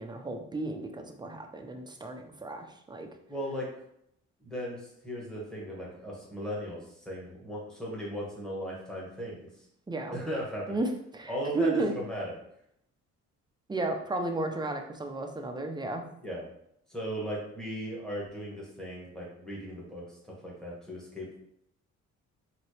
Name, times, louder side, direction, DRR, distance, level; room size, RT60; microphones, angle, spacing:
voice 1, 0.0-3.1 9.9-10.2 10.7-11.9 13.7-16.1, right 2 dB, 15° right, 3 dB, 0.6 m, -33 dB
voice 2, 3.3-3.7 4.4-9.5 10.1-10.8 11.3-12.2 16.2-16.4 16.9-20.2 20.4-21.4, equal, ahead, -5 dB, 1.6 m, -37 dB
4.1 x 2.9 x 3.2 m, 0.73 s
cardioid pair, 90°, 30 cm